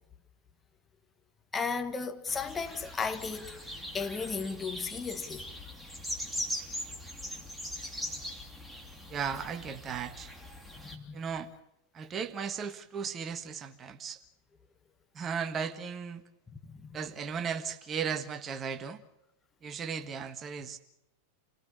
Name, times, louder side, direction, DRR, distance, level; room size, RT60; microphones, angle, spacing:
voice 1, 1.5-3.5 3.9-5.5 10.8-11.2 16.6-17.0, left 5 dB, 15° left, 1.7 m, -35 dB
sound 1, 2.3-11.0, equal, ahead, 3.0 m, -41 dB
voice 2, 9.1-10.3 11.1-11.5 11.9-14.2 15.1-16.2 16.9-19.0 19.6-20.8, right 6 dB, 25° right, 1.4 m, -36 dB
28.5 x 18.0 x 6.9 m
figure-of-eight pair, 90°, 0 cm